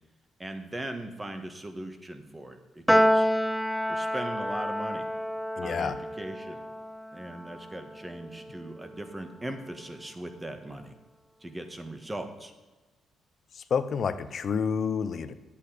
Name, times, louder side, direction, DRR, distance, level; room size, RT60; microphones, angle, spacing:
voice 1, 0.4-3.3 3.9-5.1 5.6-6.6 7.1-10.9 11.4-12.5, right 1 dB, 15° right, 7 dB, 1.4 m, -39 dB
Piano, 2.9-9.4, equal, ahead, 0.4 m, -29 dB
voice 2, 5.6-6.0 13.5-15.3, left 6 dB, 55° left, 12 dB, 0.8 m, -29 dB
10.5 x 8.6 x 5.0 m, 1.2 s
cardioid pair, 90°, 0 cm